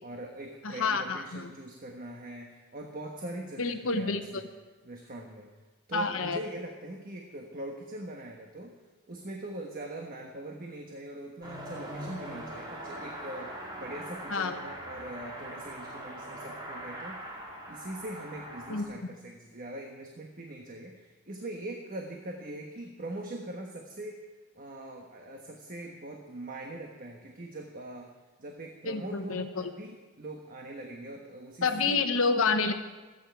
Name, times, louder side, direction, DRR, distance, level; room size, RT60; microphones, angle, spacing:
voice 1, 0.0-4.4 4.8-5.5 5.9-8.8 9.1-17.4 17.7-24.2 24.5-28.1 28.4-32.0, right 1 dB, 40° right, 1 dB, 1.2 m, -42 dB
voice 2, 0.6-1.5 3.6-4.4 5.9-6.4 14.3-14.6 18.7-18.8 28.8-29.6 31.6-32.7, left 4 dB, 65° left, 8 dB, 1.1 m, -28 dB
Car passing by / Accelerating revving vroom, 11.4-18.8, right 1 dB, 20° right, 2.5 m, -41 dB
25.5 x 9.2 x 4.6 m, 1.3 s
head